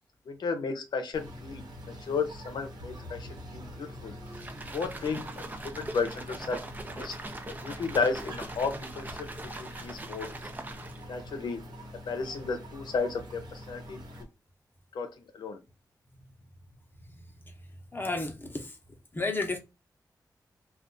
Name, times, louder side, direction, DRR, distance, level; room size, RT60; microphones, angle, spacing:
voice 1, 0.3-4.2 4.7-7.2 7.5-9.3 9.6-10.3 11.1-11.6 11.9-14.0 14.9-15.6, left 4 dB, 90° left, 0.6 m, -33 dB
sound 1, 1.1-14.2, equal, 75° right, 1.0 m, -45 dB
sound 2, 4.3-11.2, right 2 dB, 25° right, 0.5 m, -42 dB
voice 2, 17.9-18.7 19.1-19.6, left 3 dB, 30° left, 0.8 m, -31 dB
2.5 x 2.4 x 3.7 m
wide cardioid pair, 85°, 7 cm